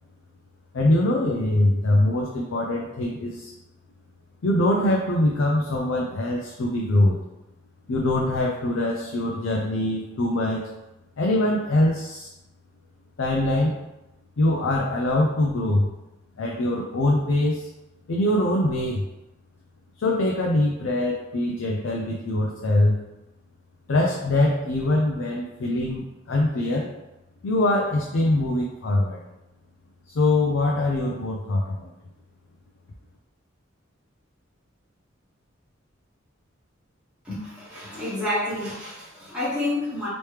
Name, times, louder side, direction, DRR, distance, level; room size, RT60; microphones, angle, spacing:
voice 1, 0.7-3.5 4.4-7.2 7.9-10.7 11.2-12.3 13.2-13.7 14.4-15.9 16.4-17.7 18.1-19.1 20.0-23.0 23.9-26.9 27.4-29.2 30.1-31.9, left 1 dB, 70° left, -1 dB, 0.5 m, -23 dB
voice 2, 37.2-40.1, left 1 dB, 5° right, -11 dB, 1.2 m, -29 dB
3.1 x 3.0 x 3.2 m, 0.96 s
head